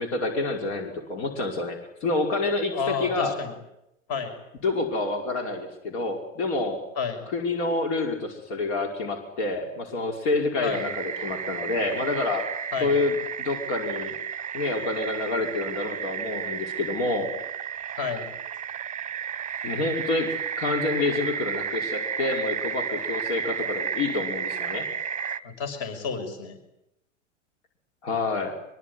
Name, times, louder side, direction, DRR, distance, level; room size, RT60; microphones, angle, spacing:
voice 1, 0.0-3.4 4.6-6.8 7.3-12.4 12.8-14.2 14.5-17.3 19.6-24.9 28.0-28.6, left 3 dB, 55° left, 3 dB, 5.6 m, -28 dB
voice 2, 2.7-3.6 4.1-4.3 7.0-7.2 10.6-10.9 12.7-13.0 18.0-18.3 25.4-26.6, left 6 dB, 40° left, 8 dB, 6.0 m, -30 dB
sound 1, 10.7-25.4, right 7 dB, 20° right, 1.1 m, -32 dB
23.5 x 23.5 x 9.8 m, 0.85 s
hypercardioid pair, 100°, 39 cm